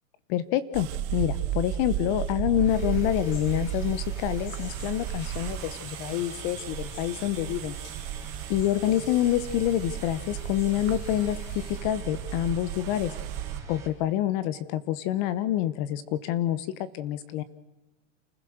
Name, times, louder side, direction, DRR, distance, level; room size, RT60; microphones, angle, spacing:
voice 1, 0.3-7.8 8.5-11.4 11.8-13.1 13.7-16.7 16.9-17.4, left 12 dB, 35° left, 16 dB, 1.0 m, -27 dB
sound 1, 0.7-13.6, right 11 dB, 40° right, 1.4 m, -34 dB
sound 2, 2.6-13.9, right 4 dB, 5° right, 3.8 m, -45 dB
sound 3, 2.7-11.8, left 3 dB, 55° left, 7.7 m, -51 dB
29.0 x 15.5 x 6.4 m, 1.1 s
supercardioid pair, 160°, 40 cm